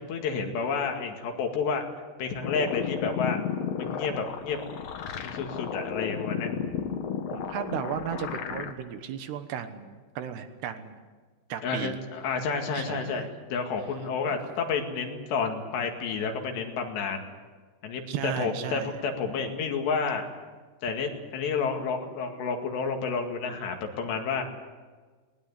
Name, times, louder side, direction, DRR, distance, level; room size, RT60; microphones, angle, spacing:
voice 1, 0.0-1.8 2.2-3.4 3.8-4.6 5.3-6.5 11.6-17.3 17.8-20.2 20.8-24.4, left 5 dB, 75° left, 4 dB, 4.2 m, -30 dB
sound 1, 2.4-8.7, left 8 dB, 90° left, 1.4 m, -33 dB
voice 2, 6.6-7.1 7.3-11.0 11.5-12.0 12.7-13.3 18.1-18.9, right 8 dB, 75° right, 9 dB, 3.1 m, -35 dB
20.0 x 19.5 x 9.7 m, 1.4 s
omnidirectional pair, 5.1 m